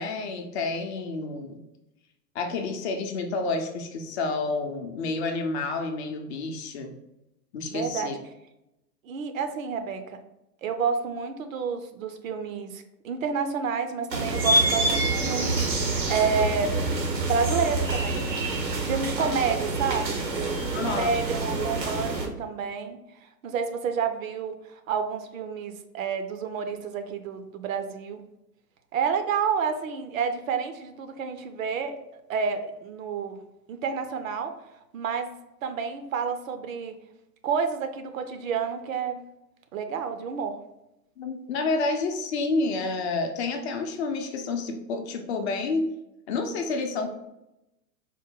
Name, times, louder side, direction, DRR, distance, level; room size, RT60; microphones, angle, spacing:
voice 1, 0.0-1.6 2.3-6.9 7.5-8.1 19.2-19.3 20.7-21.2 41.2-45.9 46.3-47.1, left 3 dB, 40° left, 4 dB, 0.6 m, -29 dB
voice 2, 7.7-8.1 9.0-10.2 10.6-16.8 17.2-18.3 18.7-20.2 20.8-23.0 23.4-28.2 28.9-33.4 33.7-34.6 34.9-35.3 35.6-36.9 37.4-39.2 39.7-40.6, right 6 dB, 55° right, 7 dB, 0.6 m, -29 dB
sound 1, 14.1-22.3, right 2 dB, 85° right, 1.0 m, -27 dB
4.4 x 2.1 x 3.6 m, 0.88 s
figure-of-eight pair, 105°, 50 cm